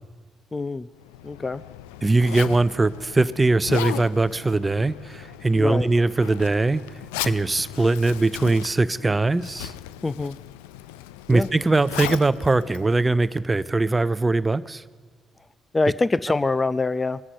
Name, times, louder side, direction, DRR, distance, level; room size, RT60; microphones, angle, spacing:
voice 1, 0.5-0.9 1.2-1.6 5.6-5.9 10.0-10.4 11.3-11.5 15.7-17.2, left 3 dB, 25° left, 17 dB, 0.5 m, -24 dB
Zipper (clothing), 1.0-13.7, left 14 dB, 85° left, 0.4 m, -37 dB
voice 2, 2.0-6.8 7.2-9.7 11.3-14.8, right 3 dB, 25° right, 16 dB, 0.6 m, -21 dB
23.0 x 10.0 x 5.5 m, 1.5 s
hypercardioid pair, 50°, 0 cm